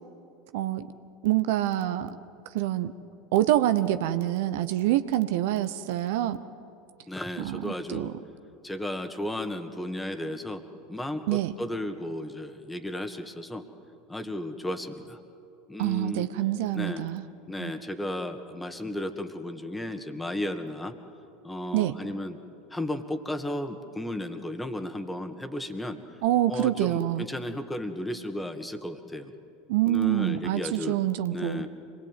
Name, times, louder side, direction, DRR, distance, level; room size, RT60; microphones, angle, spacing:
voice 1, 0.5-0.9 1.2-2.2 2.5-2.9 3.3-6.4 7.4-8.1 11.3-11.5 15.8-17.2 17.6-17.7 21.7-22.0 26.2-27.2 29.7-31.6, right 13 dB, 65° right, 11 dB, 0.9 m, -26 dB
voice 2, 7.1-8.1 8.6-13.6 14.1-15.2 15.7-16.3 16.7-17.1 17.5-21.0 21.4-22.4 22.7-26.0 26.5-29.3 29.9-31.0 31.3-31.7, left 1 dB, 10° left, 8 dB, 2.0 m, -34 dB
26.0 x 20.5 x 9.2 m, 2.6 s
figure-of-eight pair, 80°, 0 cm